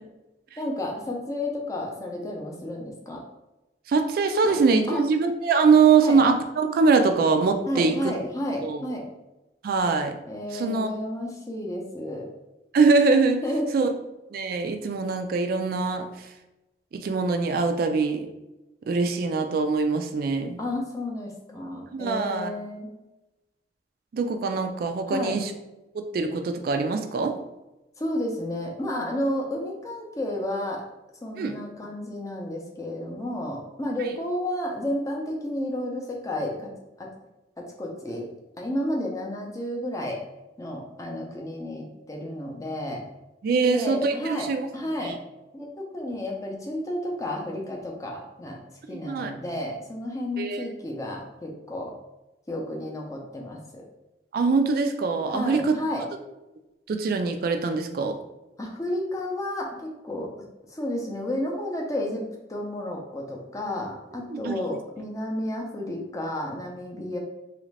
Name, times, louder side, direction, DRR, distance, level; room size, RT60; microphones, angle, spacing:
voice 1, 0.6-3.2 4.4-4.6 4.9-5.1 6.0-6.2 7.7-9.1 10.3-12.3 13.4-13.9 20.6-22.9 25.1-25.4 28.0-30.8 31.2-36.7 37.0-37.1 37.6-38.3 38.6-40.2 40.6-43.0 43.6-45.2 45.5-48.6 48.9-51.9 52.5-53.8 55.3-56.1 58.6-60.3 60.7-62.2 62.5-67.2, left 1 dB, 20° left, -1 dB, 0.5 m, -31 dB
voice 2, 3.9-8.1 8.6-8.8 9.6-10.2 10.5-10.9 12.7-13.4 13.7-13.9 14.3-16.1 16.9-18.3 18.9-20.6 21.9-22.5 24.1-25.5 25.9-27.4 31.4-31.6 43.4-44.7 45.0-45.1 49.0-49.3 50.4-50.7 54.3-55.7 56.9-58.2 64.3-64.6, right 4 dB, 55° right, 6 dB, 0.3 m, -23 dB
3.1 x 2.5 x 3.2 m, 1.0 s
head